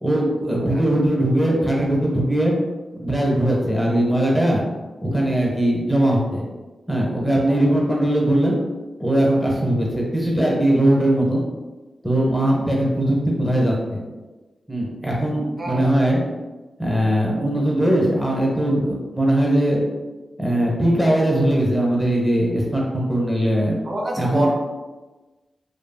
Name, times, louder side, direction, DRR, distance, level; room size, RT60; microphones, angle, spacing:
voice 1, 0.0-2.5 2.9-4.6 5.0-6.4 6.9-8.6 9.0-11.4 12.0-14.0 14.7-16.2 16.8-19.8 20.4-23.8 24.2-24.5, right 1 dB, ahead, -3 dB, 0.8 m, -20 dB
voice 2, 15.6-16.0 23.8-24.5, right 1 dB, 50° right, -2 dB, 0.5 m, -27 dB
2.9 x 2.5 x 2.2 m, 1.2 s
cardioid pair, 65°, 0 cm